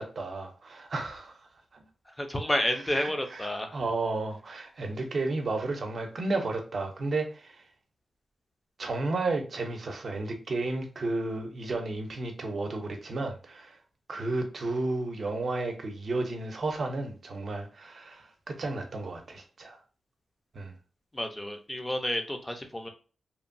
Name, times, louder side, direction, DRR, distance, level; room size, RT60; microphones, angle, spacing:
voice 1, 0.0-1.4 1.7-1.8 2.9-3.5 3.7-7.6 8.8-13.8 14.1-19.8 20.5-20.7, right 2 dB, 50° right, 0.6 m, -32 dB
voice 2, 2.2-3.8 21.1-22.9, left 1 dB, 15° left, 0.5 m, -30 dB
2.9 x 2.2 x 2.6 m
wide cardioid pair, 130°, 0 cm